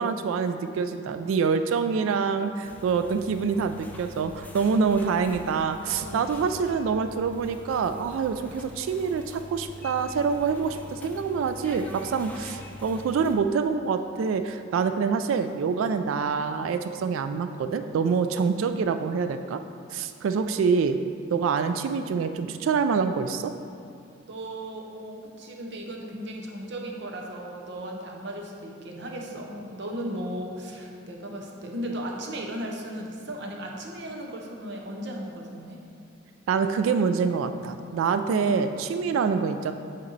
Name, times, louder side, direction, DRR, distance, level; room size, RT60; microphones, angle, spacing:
voice 1, 0.0-19.6 19.9-21.0 21.3-23.5 36.5-39.7, right 5 dB, 85° right, 10 dB, 0.3 m, -26 dB
sound 1, 2.6-13.4, left 1 dB, 10° left, 0.4 m, -44 dB
voice 2, 6.0-6.3 18.2-18.3 24.2-35.8, right 1 dB, 60° right, 1 dB, 0.7 m, -36 dB
7.8 x 4.3 x 3.9 m, 2.4 s
head